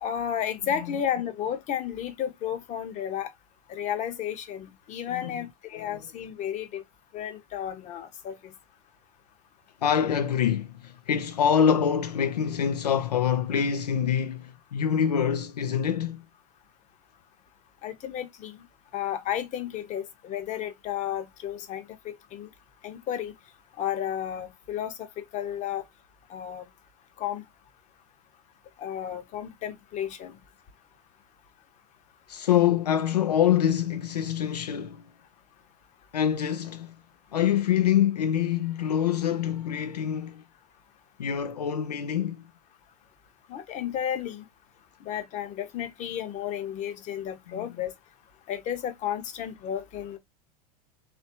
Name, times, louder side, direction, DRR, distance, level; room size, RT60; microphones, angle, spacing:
voice 1, 0.0-3.3 3.7-6.8 7.1-8.5 17.8-18.6 18.9-22.5 22.8-23.3 23.8-25.8 26.3-26.7 27.2-27.4 28.8-30.4 43.5-44.5 45.0-47.9 48.5-50.2, left 9 dB, 35° left, 1.0 m, -33 dB
voice 2, 5.1-5.4 5.7-5.9 9.8-16.2 32.3-35.0 36.1-36.9 37.3-40.4 41.2-42.4 47.5-47.7, left 9 dB, 80° left, 0.5 m, -25 dB
4.2 x 3.3 x 2.9 m
hypercardioid pair, 90°, 20 cm